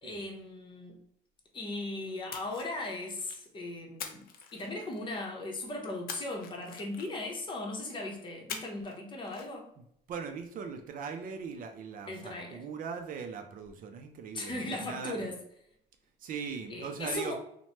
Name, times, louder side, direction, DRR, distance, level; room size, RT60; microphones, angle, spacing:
voice 1, 0.0-1.0 1.5-4.2 4.5-9.7 12.1-12.6 14.3-15.4 16.7-17.3, left 2 dB, 30° left, 0.8 m, -38 dB
Splash splatter, 2.3-3.5 4.0-5.2 6.1-7.4 8.5-9.0 9.2-9.5, left 6 dB, 60° left, 0.5 m, -44 dB
voice 2, 10.1-15.2 16.2-17.3, right 6 dB, 55° right, 0.4 m, -40 dB
3.0 x 2.1 x 2.8 m
cardioid pair, 110°, 17 cm